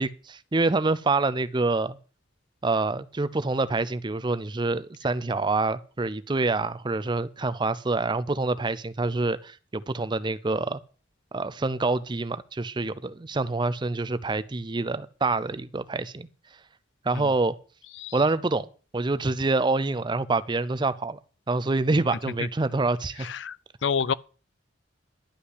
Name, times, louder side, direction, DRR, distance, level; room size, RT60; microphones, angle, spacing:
voice 1, 0.0-2.0 2.6-10.8 11.3-16.3 17.0-17.5 18.1-21.2 21.5-23.3, right 3 dB, 25° right, 0.5 m, -26 dB
voice 2, 23.2-23.6 23.8-24.1, left 6 dB, 70° left, 0.5 m, -27 dB
11.5 x 5.5 x 8.3 m
head